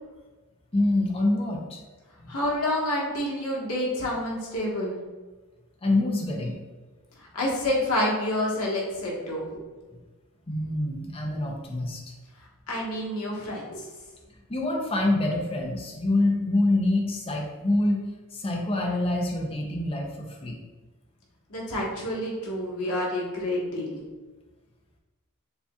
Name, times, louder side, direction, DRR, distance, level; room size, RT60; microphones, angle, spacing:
voice 1, 0.7-1.8 2.2-2.3 5.8-6.6 9.9-10.0 10.5-12.1 14.5-18.0 18.3-20.6, left 2 dB, 25° left, 0 dB, 0.6 m, -26 dB
voice 2, 2.3-5.0 7.3-9.6 12.7-13.8 21.5-24.0, left 1 dB, 85° left, -4 dB, 1.3 m, -28 dB
6.9 x 2.8 x 2.3 m, 1.3 s
head